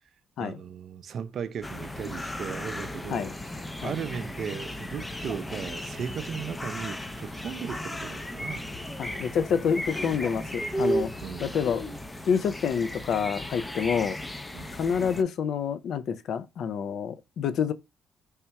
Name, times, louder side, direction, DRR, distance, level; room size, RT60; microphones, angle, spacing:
voice 1, 0.4-3.5 3.8-8.7 11.2-11.6 14.5-14.8, right 7 dB, 60° right, 0.4 m, -36 dB
sound 1, 1.6-15.2, equal, 15° left, 0.5 m, -35 dB
voice 2, 9.0-11.1 11.4-11.8 12.3-14.2 14.7-17.7, left 7 dB, 70° left, 0.4 m, -27 dB
3.4 x 2.8 x 4.4 m
cardioid pair, 90°, 0 cm